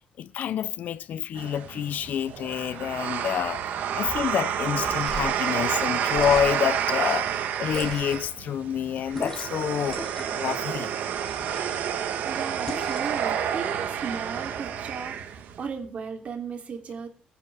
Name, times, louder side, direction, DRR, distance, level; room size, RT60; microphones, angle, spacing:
voice 1, 0.2-3.6 4.0-7.3 7.6-10.0 10.3-10.9, left 9 dB, 70° left, 0.7 m, -28 dB
sound 1, 1.4-15.6, right 9 dB, 90° right, 1.6 m, -29 dB
sound 2, 4.7-5.4 6.1-6.8 7.7-8.3 9.1-9.6 9.9-10.5 11.2-11.8 12.7-13.2, left 1 dB, 15° left, 3.6 m, -38 dB
voice 2, 12.2-17.1, right 6 dB, 50° right, 3.4 m, -36 dB
23.0 x 10.0 x 3.7 m
cardioid pair, 135°, 3 cm